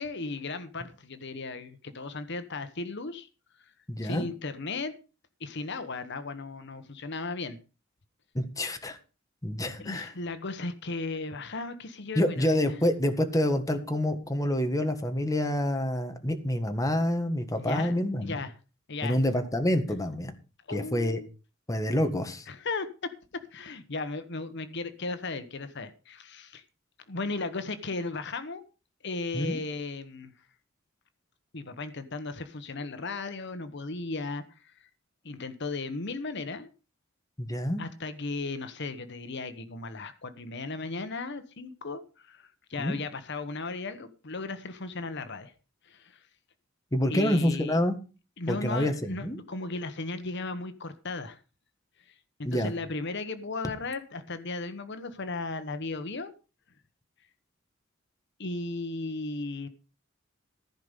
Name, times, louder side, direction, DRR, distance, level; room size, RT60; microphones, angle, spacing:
voice 1, 0.0-3.3 3.6-3.7 4.0-4.9 5.4-7.6 9.8-12.6 17.5-18.5 18.9-19.2 20.7-21.3 22.5-26.6 27.1-28.6 29.0-30.3 31.5-34.9 35.2-36.7 37.8-45.5 45.8-46.2 47.1-47.8 48.4-51.4 52.1-56.3 58.4-59.7, left 3 dB, 60° left, 1.2 m, -36 dB
voice 2, 3.9-4.3 8.3-9.0 9.4-10.1 12.1-18.3 19.0-20.3 20.7-21.2 21.7-22.4 29.3-29.6 37.4-37.8 42.8-43.0 46.9-48.0 48.5-49.4 52.4-52.7, left 1 dB, 15° left, 1.6 m, -27 dB
15.0 x 5.2 x 8.1 m
head